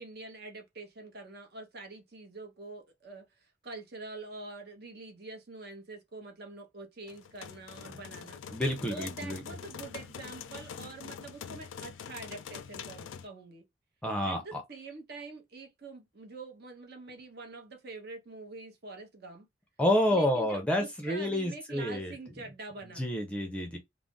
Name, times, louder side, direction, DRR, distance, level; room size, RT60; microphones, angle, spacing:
voice 1, 0.0-8.4 8.9-13.6 14.2-19.5 20.1-23.1, right 3 dB, 55° right, 0.8 m, -45 dB
sound 1, 7.1-13.3, left 7 dB, 80° left, 0.3 m, -44 dB
voice 2, 8.5-9.4 14.0-14.6 19.8-22.1 23.0-23.8, left 1 dB, 5° left, 0.5 m, -29 dB
2.4 x 2.0 x 3.7 m
head